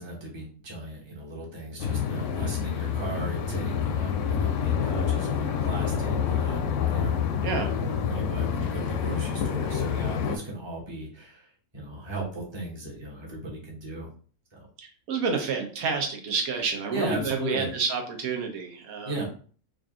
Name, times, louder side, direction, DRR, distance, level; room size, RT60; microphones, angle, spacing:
voice 1, 0.0-14.1 14.5-14.7 16.9-17.7 19.0-19.3, right 1 dB, 20° right, -3 dB, 1.0 m, -36 dB
sound 1, 1.8-10.4, left 7 dB, 70° left, 0.8 m, -27 dB
voice 2, 14.8-19.2, right 5 dB, 80° right, 3 dB, 1.3 m, -29 dB
3.8 x 2.5 x 3.6 m, 0.42 s
omnidirectional pair, 1.5 m